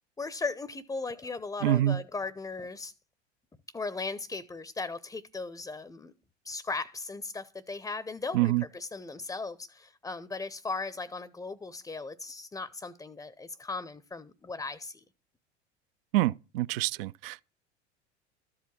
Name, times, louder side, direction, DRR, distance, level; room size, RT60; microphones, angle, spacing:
voice 1, 0.2-2.9 3.7-6.1 6.4-15.0, left 3 dB, 10° left, 0.6 m, -37 dB
voice 2, 1.6-2.0 8.3-8.6 16.1-17.4, right 15 dB, 55° right, 0.5 m, -26 dB
13.5 x 4.8 x 7.2 m
figure-of-eight pair, 75°, 34 cm